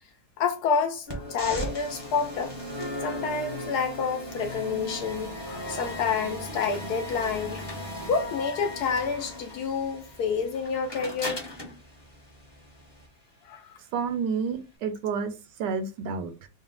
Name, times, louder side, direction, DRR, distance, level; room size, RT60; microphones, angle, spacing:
voice 1, 0.4-2.5 3.0-7.6 8.1-11.4 13.4-13.8, left 5 dB, 70° left, 1.0 m, -29 dB
sound 1, 1.1-13.1, left 1 dB, 25° left, 0.5 m, -37 dB
voice 2, 13.9-16.5, right 5 dB, 75° right, 1.2 m, -30 dB
4.0 x 2.1 x 3.7 m
omnidirectional pair, 2.0 m